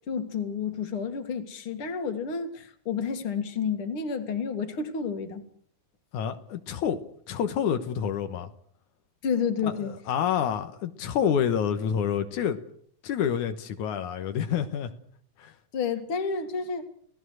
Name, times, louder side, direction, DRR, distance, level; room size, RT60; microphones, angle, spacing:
voice 1, 0.1-5.4 9.2-9.9 15.7-16.9, left 6 dB, 50° left, 2.7 m, -30 dB
voice 2, 6.1-7.0 7.3-8.5 9.6-12.6 13.0-14.9 15.4-15.5, left 8 dB, 85° left, 2.7 m, -28 dB
29.5 x 17.5 x 6.4 m
omnidirectional pair, 3.4 m